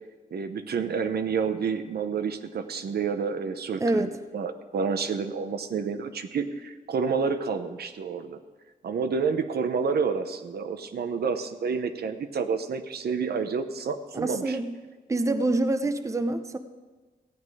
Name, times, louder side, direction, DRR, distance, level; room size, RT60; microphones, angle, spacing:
voice 1, 0.3-8.4 8.8-14.6, right 5 dB, 85° right, 8 dB, 0.8 m, -29 dB
voice 2, 3.8-4.1 14.1-14.7 15.1-16.6, right 2 dB, 20° right, 9 dB, 0.6 m, -26 dB
15.0 x 9.4 x 4.8 m, 1.3 s
wide cardioid pair, 130°, 16 cm